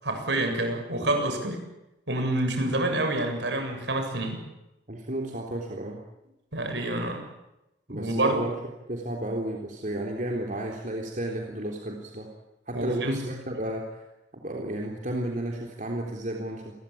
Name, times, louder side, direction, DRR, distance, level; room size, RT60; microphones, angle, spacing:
voice 1, 0.0-1.7 2.1-4.4 6.5-7.2 7.9-8.4 12.7-13.2, right 1 dB, 70° right, 4 dB, 7.7 m, -27 dB
voice 2, 4.9-6.0 7.9-8.6 8.9-12.3 12.7-14.0 14.3-16.7, right 1 dB, 45° right, 0 dB, 3.7 m, -32 dB
29.0 x 22.0 x 8.9 m, 0.95 s
head